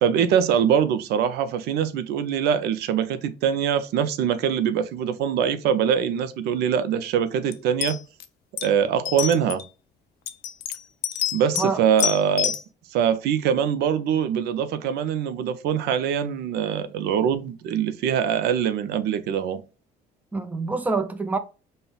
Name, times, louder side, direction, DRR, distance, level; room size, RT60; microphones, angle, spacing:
voice 1, 0.0-8.0 8.6-9.6 11.3-12.5 12.9-19.6, right 8 dB, 75° right, 0.4 m, -23 dB
sound 1, 7.5-7.6 7.8-8.2 8.6-8.7 9.0-9.6 10.3-11.7 12.0-12.6, left 11 dB, 70° left, 0.4 m, -27 dB
voice 2, 11.5-11.9 20.3-21.4, right 3 dB, 10° right, 0.4 m, -26 dB
5.3 x 2.0 x 2.3 m
cardioid pair, 110°, 17 cm